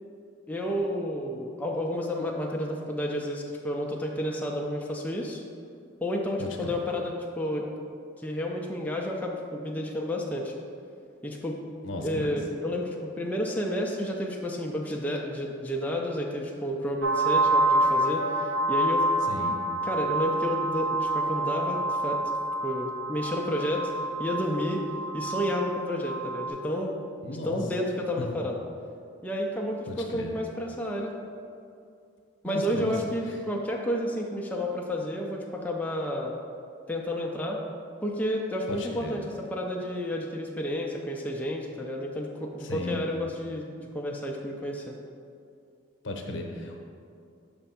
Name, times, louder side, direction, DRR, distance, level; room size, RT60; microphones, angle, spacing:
voice 1, 0.5-5.4 6.0-7.7 8.2-10.5 11.2-11.6 12.0-19.1 19.8-22.3 22.6-23.9 24.2-24.8 25.1-26.9 27.3-28.6 29.2-31.1 32.4-36.3 36.9-37.6 38.0-43.7 43.9-45.0, left 1 dB, 10° left, -1 dB, 0.4 m, -31 dB
voice 2, 6.4-6.8 11.8-12.3 19.3-19.6 27.2-27.6 28.2-28.3 29.9-30.3 32.4-32.9 33.3-33.4 38.7-39.2 42.6-43.0 46.0-46.8, left 1 dB, 75° left, 2 dB, 0.7 m, -35 dB
sound 1, 17.0-26.5, right 1 dB, 80° right, 0.8 m, -27 dB
6.0 x 3.3 x 5.6 m, 2.4 s
head